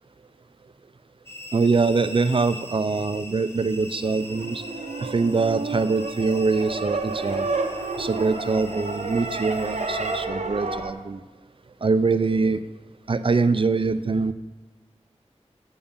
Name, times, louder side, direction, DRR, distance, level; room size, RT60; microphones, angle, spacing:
sound 1, 1.3-10.3, left 1 dB, 20° left, 0.8 m, -42 dB
voice 1, 1.5-4.6 5.0-7.5 8.0-11.2 11.8-12.6 13.1-14.3, right 4 dB, 50° right, 12 dB, 0.4 m, -23 dB
sound 2, 3.8-10.9, right 3 dB, 90° right, 0.7 m, -30 dB
6.9 x 5.2 x 7.1 m, 1.2 s
wide cardioid pair, 65°, 12 cm